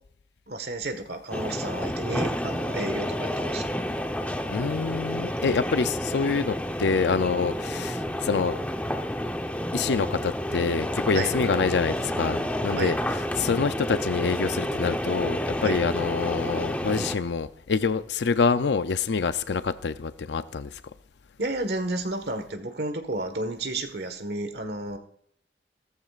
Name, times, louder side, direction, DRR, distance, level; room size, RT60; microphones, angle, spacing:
voice 1, 0.5-3.7 11.1-11.3 12.8-12.9 15.6-15.8 21.4-25.0, right 2 dB, 65° right, 1.4 m, -31 dB
sound 1, 1.3-17.2, equal, 10° left, 0.8 m, -30 dB
voice 2, 4.5-8.6 9.7-20.8, left 5 dB, 75° left, 0.5 m, -26 dB
16.5 x 14.0 x 2.5 m
head